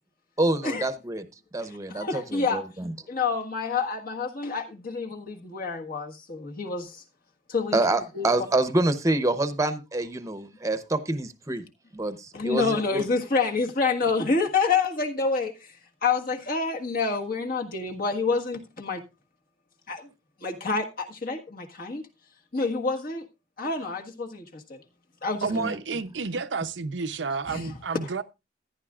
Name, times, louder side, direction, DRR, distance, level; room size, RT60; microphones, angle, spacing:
voice 1, 0.4-1.3 1.5-2.9 7.7-11.6 11.9-13.0 25.5-25.8, right 2 dB, 20° right, 0.8 m, -27 dB
voice 2, 1.9-2.6 3.1-7.0 7.5-7.8 8.1-8.3 12.3-15.7 16.0-19.0 19.9-20.1 20.4-22.1 22.5-23.2 23.6-24.8 25.2-25.5 27.5-27.7 28.0-28.1, left 4 dB, 55° left, 1.6 m, -28 dB
voice 3, 25.4-28.2, right 4 dB, 85° right, 0.7 m, -30 dB
14.5 x 11.0 x 2.5 m
head